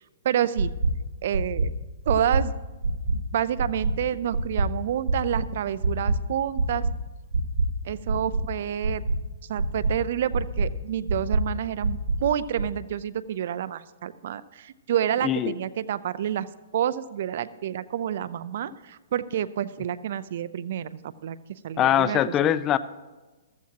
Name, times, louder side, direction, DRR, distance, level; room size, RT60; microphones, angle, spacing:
voice 1, 0.2-0.7 1.2-1.7 2.1-2.5 3.1-6.8 7.8-9.0 9.5-16.5 16.7-22.5, right 10 dB, 55° right, 16 dB, 0.5 m, -29 dB
sound 1, 0.6-0.9 1.3-1.6 2.1-2.4 2.8-3.1 3.6-3.9 4.3-4.6 5.1-5.4 5.8-6.1 6.6-6.9 7.3-7.6 8.1-8.4 8.8-9.1 9.6-9.9 10.3-10.7 11.1-11.4 11.8-12.2 12.6-12.7, right 4 dB, 85° right, 2.7 m, -24 dB
voice 2, 15.2-15.5 21.8-22.8, left 11 dB, 20° left, 15 dB, 0.4 m, -22 dB
14.5 x 14.0 x 2.9 m, 1.2 s
hypercardioid pair, 150°, 0 cm